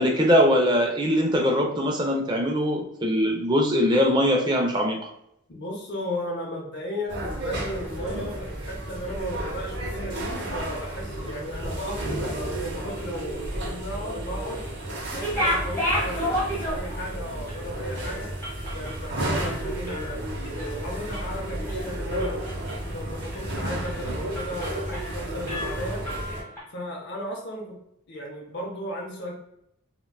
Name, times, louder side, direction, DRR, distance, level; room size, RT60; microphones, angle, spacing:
voice 1, 0.0-5.1, equal, 20° right, 2 dB, 0.4 m, -22 dB
voice 2, 5.5-14.6 15.1-18.3 18.7-26.0 26.7-27.8 28.1-29.3, equal, 55° left, -1 dB, 0.6 m, -35 dB
sound 1, 7.1-26.4, right 1 dB, 55° right, 0.8 m, -32 dB
sound 2, 15.1-17.1 17.5-17.6 18.0-20.1 20.4-20.8 21.1-21.8 22.2-22.9 23.3-23.5 23.8-24.0 24.3-25.2 25.5-26.6, equal, 15° left, 1.1 m, -31 dB
3.7 x 2.2 x 2.3 m, 0.77 s
head